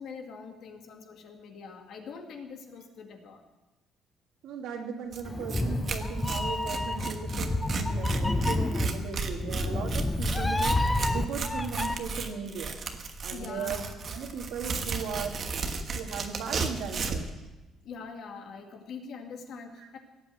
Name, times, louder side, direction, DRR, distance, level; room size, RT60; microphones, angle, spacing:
voice 1, 0.0-3.4 13.3-14.0 17.8-20.0, left 5 dB, 55° left, 3 dB, 2.1 m, -43 dB
voice 2, 4.4-12.9 13.2-15.4 15.9-17.3 19.8-19.9, right 6 dB, 75° right, 2 dB, 2.4 m, -37 dB
Tearing, 5.1-5.2 5.5-5.6 5.9-17.3, right 4 dB, 35° right, 1.2 m, -34 dB
Meow, 5.2-11.9, left 2 dB, 10° left, 0.6 m, -29 dB
17.5 x 8.6 x 7.8 m, 1.1 s
cardioid pair, 170°, 0 cm